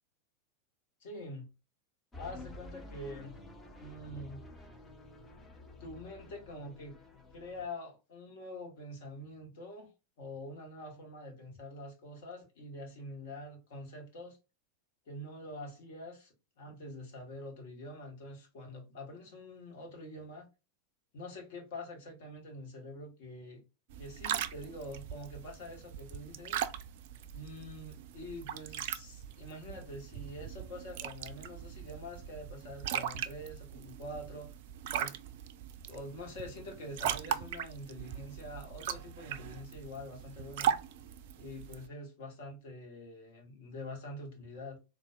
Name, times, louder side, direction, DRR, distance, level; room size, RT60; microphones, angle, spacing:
voice 1, 1.0-1.5 2.2-3.4 3.8-4.5 5.8-6.9 7.3-9.9 10.2-14.4 15.1-20.5 21.1-23.6 24.0-26.6 27.3-34.5 35.0-35.2 35.9-40.8 41.3-44.8, left 1 dB, 50° left, 1.2 m, -45 dB
sound 1, 2.1-7.7, left 2 dB, 10° left, 0.7 m, -50 dB
sound 2, 23.9-41.9, right 9 dB, 50° right, 0.3 m, -39 dB
3.9 x 2.4 x 2.3 m
figure-of-eight pair, 90°, 0 cm